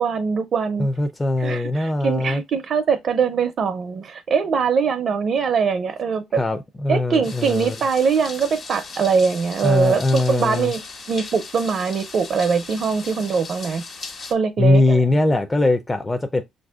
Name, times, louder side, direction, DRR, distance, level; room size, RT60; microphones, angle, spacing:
voice 1, 0.0-0.9 1.4-6.4 6.9-10.8 11.1-13.8 14.3-15.0, right 5 dB, 60° right, 0.5 m, -22 dB
voice 2, 0.8-2.4 6.4-7.8 9.6-10.7 14.6-16.4, left 2 dB, 20° left, 0.4 m, -20 dB
sound 1, 7.2-14.3, left 4 dB, 50° left, 1.4 m, -37 dB
5.9 x 2.6 x 2.4 m
cardioid pair, 75°, 0 cm